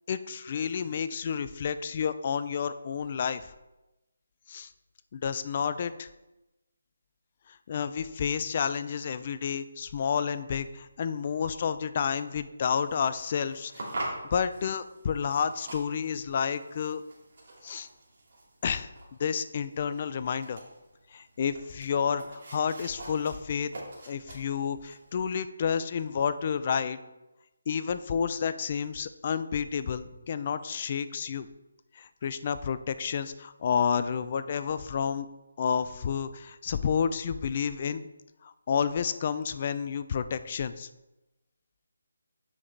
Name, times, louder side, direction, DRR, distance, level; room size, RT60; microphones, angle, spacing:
voice 1, 0.1-3.4 4.5-4.7 5.1-6.1 7.7-17.0 17.6-17.9 18.6-18.9 19.2-20.6 21.1-23.7 24.1-27.0 27.7-31.5 32.0-35.3 35.6-38.1 38.4-40.9, left 7 dB, 35° left, 13 dB, 0.4 m, -30 dB
sound 1, 12.6-25.2, right 2 dB, 50° right, 2.4 m, -45 dB
7.5 x 5.6 x 3.3 m, 1.0 s
figure-of-eight pair, 160°, 0 cm